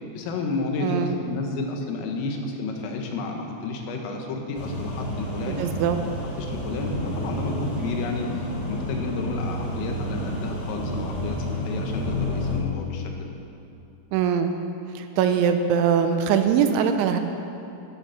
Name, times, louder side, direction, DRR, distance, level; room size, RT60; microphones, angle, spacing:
voice 1, 0.1-5.6 6.0-6.1 6.4-13.3, left 3 dB, 90° left, 2 dB, 4.1 m, -31 dB
voice 2, 0.8-1.1 5.5-6.0 14.1-14.5 15.0-17.2, right 7 dB, 80° right, 7 dB, 3.0 m, -22 dB
sound 1, 4.5-12.6, left 1 dB, 50° left, 1.2 m, -30 dB
14.0 x 13.5 x 5.8 m, 2.7 s
omnidirectional pair, 5.7 m